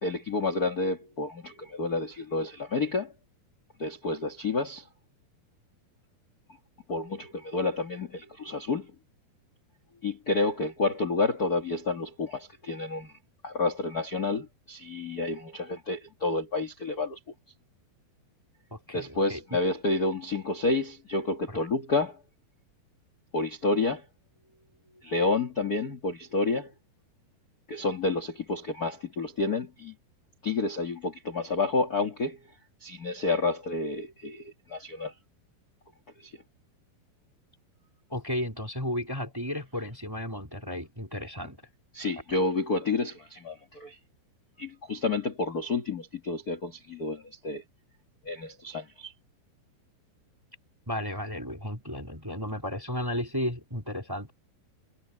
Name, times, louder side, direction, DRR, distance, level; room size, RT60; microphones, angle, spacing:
voice 1, 0.0-3.1 3.8-4.8 6.9-8.9 10.0-13.1 13.4-17.2 18.9-22.2 23.3-24.0 25.0-26.7 27.7-29.9 30.4-32.4 32.8-35.1 36.2-36.3 41.9-44.0 44.6-47.6 48.2-49.1, left 3 dB, 45° left, 1.2 m, -29 dB
voice 2, 18.7-19.4 21.5-21.6 38.1-41.6 42.3-42.4 50.9-54.3, left 1 dB, 5° right, 2.1 m, -34 dB
omnidirectional pair, 4.6 m